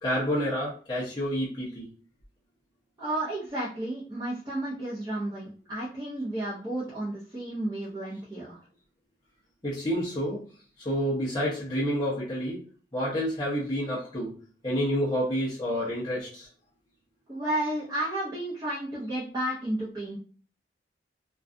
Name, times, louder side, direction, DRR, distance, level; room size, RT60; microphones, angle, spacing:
voice 1, 0.0-1.9 9.6-10.4 10.8-12.6 12.9-14.4 14.6-16.5, equal, 25° left, -7 dB, 0.6 m, -29 dB
voice 2, 3.0-8.6 17.3-20.2, right 1 dB, 20° right, -9 dB, 0.7 m, -32 dB
2.4 x 2.3 x 2.5 m, 0.41 s
head